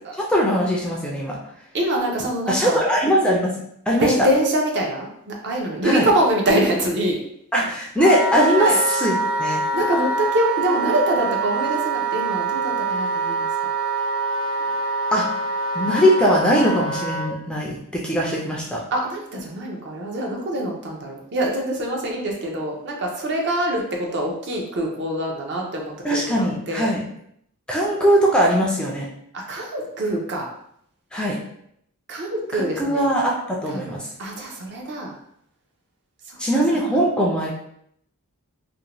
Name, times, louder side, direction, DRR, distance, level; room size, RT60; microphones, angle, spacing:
voice 1, 0.2-1.4 2.5-3.6 3.9-4.3 5.8-6.1 7.5-9.6 15.1-15.3 15.7-18.8 26.0-27.0 27.7-29.1 31.1-31.4 32.5-34.1 36.4-37.5, equal, 5° left, -3 dB, 0.3 m, -20 dB
voice 2, 1.7-2.8 4.0-7.2 8.6-8.8 9.7-13.5 18.9-26.9 29.3-30.5 32.1-33.0 33.7-35.1, right 1 dB, 50° right, 0 dB, 0.5 m, -24 dB
Wind instrument woodwind instrument, 8.0-17.3, right 3 dB, 90° right, 0.9 m, -25 dB
2.6 x 2.1 x 2.9 m, 0.71 s
head